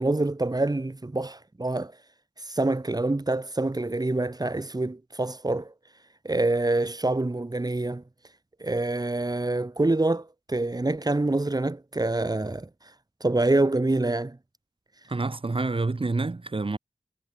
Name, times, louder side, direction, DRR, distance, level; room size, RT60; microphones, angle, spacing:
voice 1, 0.0-1.9 2.4-5.7 6.2-8.0 8.6-12.7 13.2-14.4, right 2 dB, 40° right, 2.5 m, -26 dB
voice 2, 15.1-16.8, right 3 dB, 55° right, 3.4 m, -28 dB
wide cardioid pair, 45°, 11 cm